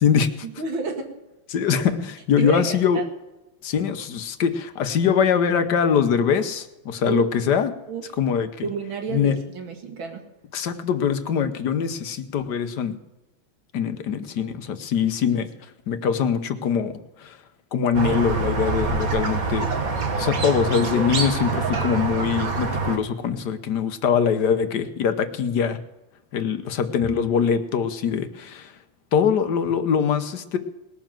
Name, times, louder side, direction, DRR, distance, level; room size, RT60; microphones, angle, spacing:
voice 1, 0.4-1.0 2.4-3.1 7.0-7.3 7.9-8.0 8.6-10.2, right 5 dB, 70° right, 4 dB, 2.7 m, -30 dB
voice 2, 1.5-3.0 3.6-7.7 8.2-8.6 9.1-9.4 10.5-13.0 13.7-15.5 15.9-16.9 17.2-17.4 17.7-19.7 20.2-25.8 26.3-28.7 29.1-30.6, left 7 dB, 60° left, 9 dB, 1.5 m, -23 dB
Squeak, 17.9-23.0, right 4 dB, 45° right, 1.8 m, -25 dB
20.0 x 7.1 x 7.5 m, 1.0 s
omnidirectional pair, 2.2 m